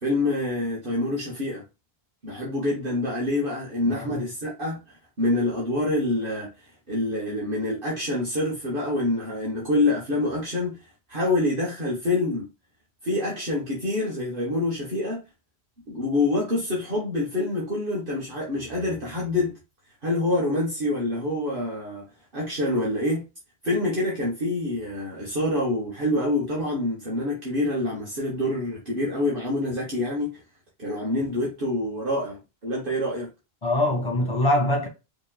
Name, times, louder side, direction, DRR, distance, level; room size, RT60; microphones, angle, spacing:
voice 1, 0.0-1.6 2.2-4.8 5.2-6.5 6.9-10.8 11.1-12.5 13.0-15.2 15.9-19.6 20.0-22.1 22.3-23.2 23.6-30.4 30.8-33.3, left 2 dB, 55° right, 1.4 m, -26 dB
voice 2, 3.9-4.2 33.6-34.9, left 1 dB, 25° left, 1.5 m, -23 dB
5.2 x 3.1 x 2.2 m
omnidirectional pair, 1.1 m